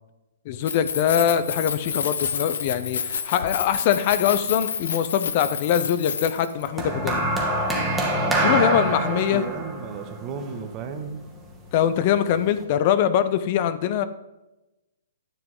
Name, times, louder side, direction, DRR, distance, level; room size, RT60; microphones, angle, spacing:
Keys jangling, 0.5-6.7, left 6 dB, 75° left, 0.8 m, -29 dB
voice 1, 0.5-7.2 8.4-9.4 11.7-14.0, left 9 dB, 45° left, 13 dB, 0.5 m, -23 dB
sound 1, 6.8-11.2 12.1-12.4, right 1 dB, 10° right, 1.5 m, -25 dB
voice 2, 8.1-11.2, right 6 dB, 30° right, 7 dB, 0.9 m, -33 dB
10.0 x 5.9 x 3.8 m, 0.98 s
hypercardioid pair, 135°, 0 cm